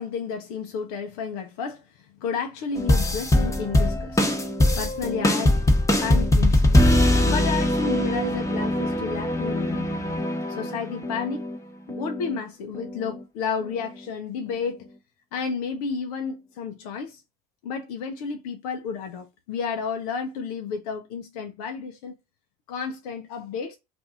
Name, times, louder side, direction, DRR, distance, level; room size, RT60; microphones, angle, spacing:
voice 1, 0.0-4.2 4.8-5.6 6.0-6.8 7.3-10.0 10.5-11.4 11.9-14.9 15.3-17.2 17.6-22.2 22.7-23.8, left 6 dB, 80° left, 0.7 m, -31 dB
sound 1, 2.8-11.6 11.9-12.4 12.7-13.2 13.6-13.7, left 1 dB, 15° left, 1.0 m, -22 dB
2.7 x 2.6 x 3.5 m
hypercardioid pair, 70°, 19 cm